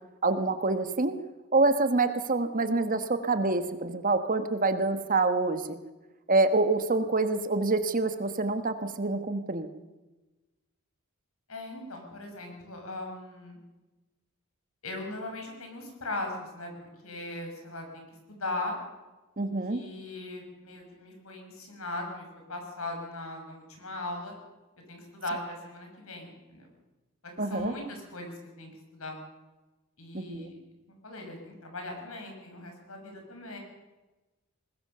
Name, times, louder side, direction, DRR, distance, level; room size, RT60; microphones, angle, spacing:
voice 1, 0.2-1.1 1.5-5.8 6.3-9.7 19.4-19.8 27.4-27.7 30.1-30.5, right 3 dB, 40° right, 9 dB, 1.3 m, -26 dB
voice 2, 11.5-13.6 14.8-18.7 19.4-24.3 24.9-26.7 27.2-29.2 30.0-30.6 31.0-33.6, left 2 dB, 70° left, 3 dB, 6.4 m, -39 dB
21.0 x 20.0 x 6.8 m, 1.1 s
head